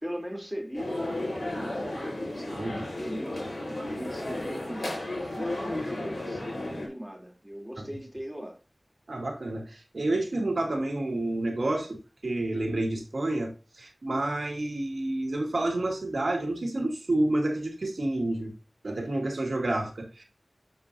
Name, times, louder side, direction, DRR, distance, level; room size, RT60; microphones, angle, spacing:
voice 1, 0.0-4.9 5.3-8.6, equal, 10° right, 3.2 m, -39 dB
sound 1, 0.7-6.9, left 1 dB, 90° left, 4.4 m, -33 dB
voice 2, 9.1-18.5 18.8-20.2, right 2 dB, 90° right, 2.1 m, -29 dB
7.5 x 6.4 x 2.7 m
wide cardioid pair, 45°, 0 cm